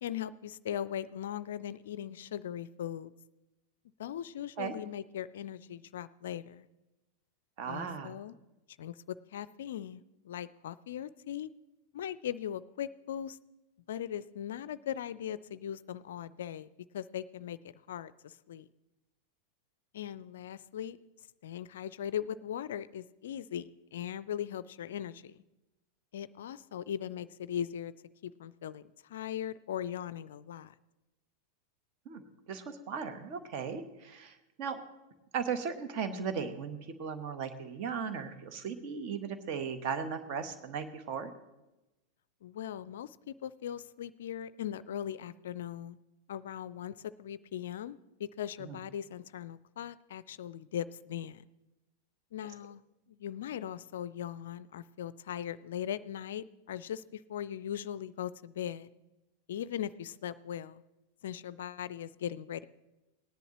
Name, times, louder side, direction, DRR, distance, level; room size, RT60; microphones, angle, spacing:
voice 1, 0.0-3.1 4.0-6.7 7.7-8.4 8.8-11.5 11.9-13.4 13.9-16.7 16.9-18.7 19.9-21.0 21.4-25.4 26.1-27.9 28.2-30.7 42.4-46.0 46.3-51.4 52.3-52.8 53.2-58.9 59.5-60.8 61.2-62.7, left 10 dB, 60° left, 18 dB, 0.4 m, -39 dB
voice 2, 7.6-8.1 32.0-32.2 32.5-34.8 35.3-41.3 48.6-48.8, right 6 dB, 45° right, 9 dB, 1.2 m, -37 dB
18.5 x 10.5 x 3.1 m, 1.0 s
figure-of-eight pair, 90°, 0 cm